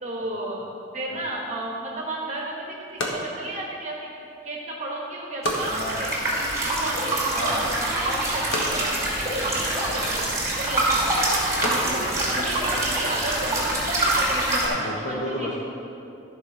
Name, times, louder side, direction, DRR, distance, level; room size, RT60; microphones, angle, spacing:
voice 1, 0.0-6.1 6.6-7.4 8.0-10.3 10.6-11.1 11.6-14.7 15.1-15.5, right 1 dB, 35° right, -2 dB, 1.2 m, -33 dB
voice 2, 1.1-1.4 5.7-6.0 7.3-7.7 11.6-12.2 14.6-15.6, left 1 dB, 45° left, -5 dB, 1.2 m, -32 dB
sound 1, 1.9-13.3, left 1 dB, 80° left, 1.4 m, -37 dB
sound 2, 5.4-14.7, right 1 dB, 15° right, 2.6 m, -25 dB
13.5 x 5.0 x 6.3 m, 2.6 s
head